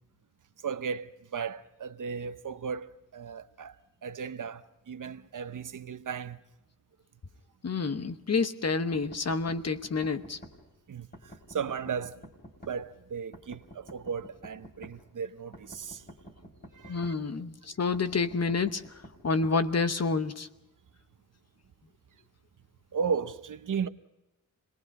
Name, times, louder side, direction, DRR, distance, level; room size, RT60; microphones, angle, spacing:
voice 1, 0.6-3.8 4.0-6.4 10.9-12.3 12.6-16.0 16.8-17.1 22.9-23.9, right 6 dB, 70° right, 0.8 m, -35 dB
voice 2, 7.6-10.4 16.9-18.8 19.2-20.5, left 4 dB, 50° left, 1.0 m, -28 dB
sound 1, 8.9-10.6 11.1-12.8 13.3-15.0 15.5-17.2 17.9-19.6, equal, 30° left, 4.2 m, -49 dB
27.0 x 19.5 x 5.3 m
wide cardioid pair, 95°, 32 cm